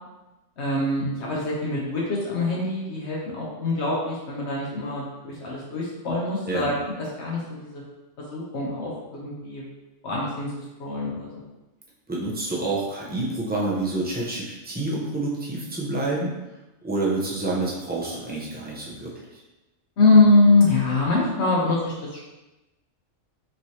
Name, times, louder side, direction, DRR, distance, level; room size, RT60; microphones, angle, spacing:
voice 1, 0.6-6.7 7.0-7.8 8.2-9.7 10.0-11.4 20.0-22.2, left 2 dB, 65° left, -5 dB, 1.0 m, -23 dB
voice 2, 6.5-6.8 12.1-16.3 16.8-19.2, right 2 dB, 10° right, -5 dB, 0.5 m, -28 dB
4.4 x 3.1 x 2.8 m, 1.0 s
omnidirectional pair, 1.3 m